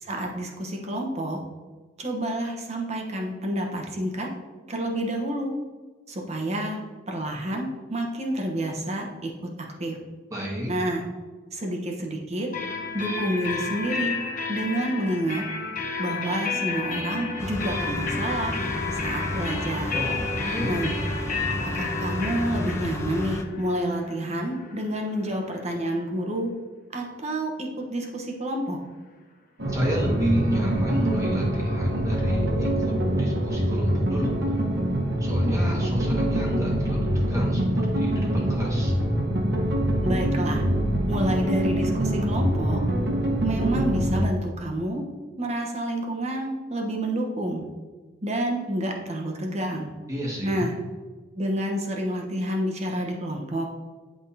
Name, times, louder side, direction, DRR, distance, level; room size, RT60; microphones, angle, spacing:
voice 1, 0.0-1.4 2.0-4.3 4.7-5.5 6.1-6.8 7.1-9.3 9.8-10.0 10.7-11.0 11.5-12.5 12.9-14.2 14.5-15.4 16.0-18.6 18.9-20.0 20.6-21.0 21.5-26.5 26.9-28.8 40.0-40.7 41.1-42.8 43.4-45.0 45.4-47.6 48.2-49.9 50.4-50.7 51.3-53.7, right 1 dB, 35° right, 1 dB, 1.0 m, -29 dB
voice 2, 10.3-10.7 19.9-20.8 29.7-34.4 35.2-38.9 50.1-50.6, equal, 15° right, -4 dB, 1.6 m, -30 dB
sound 1, 12.5-26.1, left 4 dB, 45° left, 0.8 m, -32 dB
sound 2, 17.4-23.4, equal, 15° left, 0.4 m, -32 dB
sound 3, 29.6-44.2, right 1 dB, 60° right, 1.2 m, -25 dB
10.5 x 3.6 x 2.8 m, 1.4 s
head